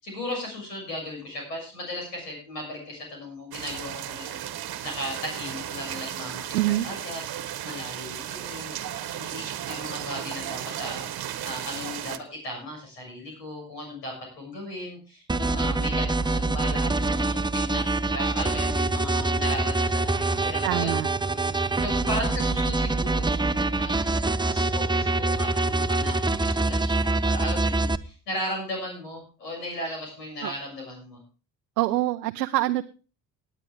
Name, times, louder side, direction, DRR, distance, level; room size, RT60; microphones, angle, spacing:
voice 1, 0.0-6.6 6.8-8.7 9.0-20.9 21.2-23.5 23.8-31.2, left 1 dB, 85° left, 0 dB, 6.8 m, -36 dB
sound 1, 3.5-12.2, right 11 dB, 50° right, 1.2 m, -35 dB
voice 2, 6.5-6.9 20.6-21.1 30.4-30.5 31.8-32.8, right 16 dB, 85° right, 9 dB, 0.6 m, -25 dB
sound 2, 15.3-28.0, right 2 dB, 10° right, 0.8 m, -25 dB
19.0 x 9.2 x 3.5 m, 0.35 s
hypercardioid pair, 45°, 47 cm